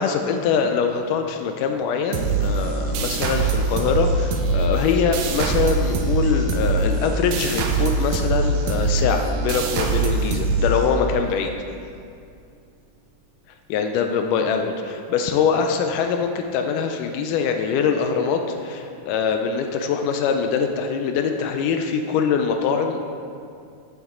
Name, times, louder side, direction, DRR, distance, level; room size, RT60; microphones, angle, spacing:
voice 1, 0.0-11.6 13.7-23.0, left 6 dB, 80° left, 5 dB, 2.0 m, -23 dB
sound 1, 2.1-11.4, right 3 dB, 75° right, 2.0 m, -23 dB
8.0 x 7.1 x 3.7 m, 2.4 s
omnidirectional pair, 3.8 m